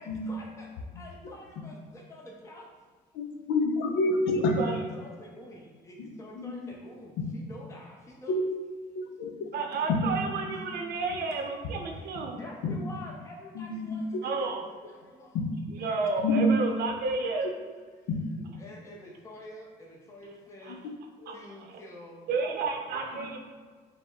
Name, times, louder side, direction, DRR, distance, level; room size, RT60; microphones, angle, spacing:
voice 1, 0.0-2.7 4.9-8.3 12.4-14.0 14.4-14.5 14.9-15.3 15.8-15.9 18.6-20.8 21.3-22.3 23.0-23.3, left 1 dB, 15° left, -2 dB, 0.6 m, -47 dB
voice 2, 3.1-4.6 6.0-6.1 6.3-6.5 8.3-8.4 8.9-9.3 9.9-10.0 10.5-10.6 12.6-12.7 13.5-13.9 15.3-15.4 16.2-16.5 20.7-20.8 21.2-21.4, left 2 dB, 85° left, 2 dB, 0.6 m, -27 dB
voice 3, 4.4-4.8 9.5-12.4 14.2-14.7 15.7-17.5 20.6-20.8 21.3-21.8 22.3-23.4, right 4 dB, 70° right, 3 dB, 0.6 m, -31 dB
4.8 x 2.1 x 3.7 m, 1.5 s
cardioid pair, 110°, 17 cm